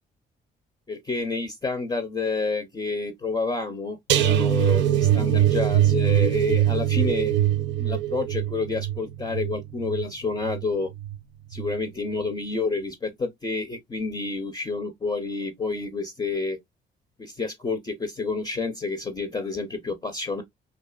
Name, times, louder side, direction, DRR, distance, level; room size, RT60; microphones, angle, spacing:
voice 1, 0.9-7.4 7.8-10.9 11.5-16.6 17.2-20.4, left 3 dB, 20° left, 0.6 m, -29 dB
sound 1, 4.1-11.2 11.5-11.8 12.2-12.3, right 12 dB, 65° right, 0.4 m, -23 dB
2.4 x 2.4 x 2.3 m
supercardioid pair, 60°, 20 cm